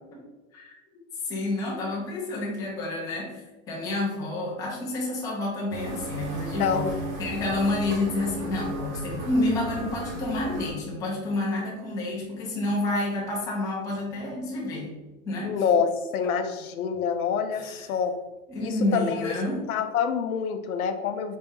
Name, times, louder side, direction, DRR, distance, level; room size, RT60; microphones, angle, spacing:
voice 1, 1.2-6.9 7.2-14.9 15.3-15.6 16.2-16.4 17.5-17.8 18.5-19.6, left 2 dB, 10° left, -4 dB, 0.5 m, -29 dB
sound 1, 5.7-10.7, right 1 dB, 25° right, 0.8 m, -34 dB
voice 2, 6.6-6.9 15.4-18.2 18.6-19.3 19.7-21.4, left 7 dB, 80° left, 8 dB, 0.7 m, -26 dB
4.2 x 3.0 x 3.5 m, 1.1 s
hypercardioid pair, 150°, 43 cm